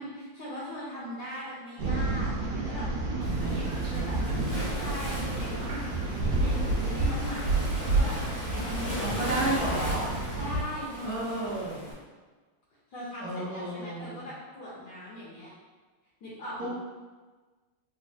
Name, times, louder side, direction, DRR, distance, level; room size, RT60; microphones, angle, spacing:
voice 1, 0.0-4.2 4.7-10.0 10.4-11.5 12.9-15.5 16.2-16.7, left 1 dB, 70° left, -7 dB, 1.1 m, -40 dB
sound 1, 1.8-10.6, right 2 dB, 85° right, 1.5 m, -30 dB
Waves surf, 3.2-11.9, equal, 45° left, 0.8 m, -38 dB
voice 2, 3.4-4.4 9.0-10.1 11.0-11.8 13.2-14.3 16.6-16.7, right 2 dB, 60° right, -8 dB, 1.0 m, -33 dB
4.0 x 2.1 x 2.6 m, 1.3 s
omnidirectional pair, 2.4 m